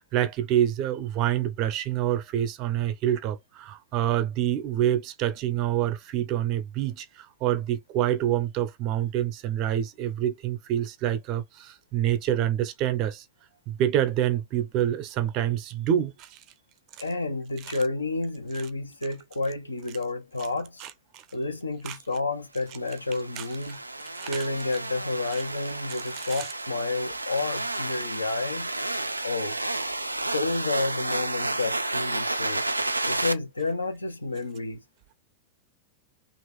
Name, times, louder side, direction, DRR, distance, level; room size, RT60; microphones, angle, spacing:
voice 1, 0.0-13.2 13.7-16.4 20.8-20.9 21.9-22.0 23.4-23.5 24.2-24.4 26.1-26.5, right 11 dB, 40° right, 0.7 m, -27 dB
voice 2, 17.0-20.8 21.3-23.8 24.2-28.7 29.2-29.6 30.3-32.7 33.1-34.8, left 3 dB, 80° left, 0.7 m, -30 dB
sound 1, 22.9-33.3, right 2 dB, 85° right, 0.3 m, -31 dB
2.9 x 2.6 x 3.5 m
figure-of-eight pair, 90°, 0 cm